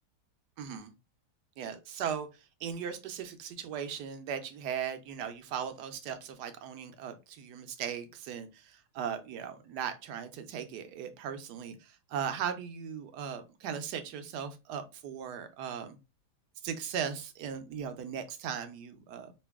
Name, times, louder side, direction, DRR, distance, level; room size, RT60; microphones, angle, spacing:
voice 1, 0.6-0.9 1.6-2.3 2.6-16.0 16.6-19.3, right 8 dB, 75° right, 1.1 m, -38 dB
3.0 x 2.6 x 3.4 m
omnidirectional pair, 1.8 m